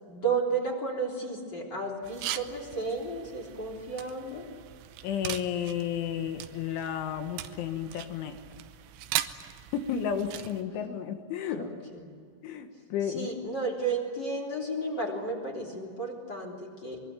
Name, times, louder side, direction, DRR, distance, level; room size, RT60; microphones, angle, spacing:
voice 1, 0.1-4.5 11.6-12.0 13.1-17.0, right 3 dB, 25° left, 1 dB, 3.4 m, -33 dB
sound 1, 2.0-10.6, right 13 dB, 75° right, 3.1 m, -39 dB
voice 2, 5.0-8.4 9.7-11.7 12.4-13.3, left 8 dB, 75° left, 7 dB, 3.8 m, -32 dB
24.0 x 23.0 x 9.2 m, 2.3 s
omnidirectional pair, 5.7 m